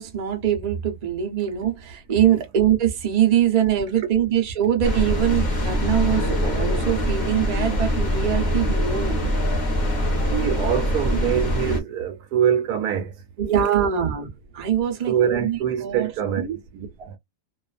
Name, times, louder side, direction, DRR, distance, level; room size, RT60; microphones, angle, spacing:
voice 1, 0.0-9.3 13.4-16.1 16.4-16.6, right 10 dB, 35° right, 0.6 m, -23 dB
sound 1, 4.8-11.8, equal, 35° left, 1.0 m, -23 dB
voice 2, 10.3-13.1 15.1-17.2, right 9 dB, 75° right, 1.1 m, -24 dB
2.5 x 2.4 x 2.4 m
omnidirectional pair, 1.7 m